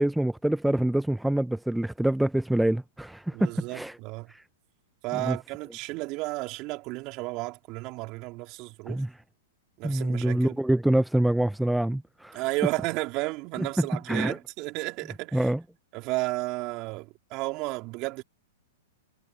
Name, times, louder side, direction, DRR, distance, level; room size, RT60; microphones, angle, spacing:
voice 1, 0.0-4.0 4.3-4.4 5.2-5.4 8.9-9.1 9.8-12.4 13.6-13.7 14.1-14.4 15.3-15.6, right 1 dB, 5° right, 0.6 m, -26 dB
voice 2, 3.3-4.3 5.0-9.0 9.8-10.5 12.3-15.5 15.9-18.2, right 23 dB, 40° right, 3.8 m, -33 dB
hypercardioid pair, 115°, 0 cm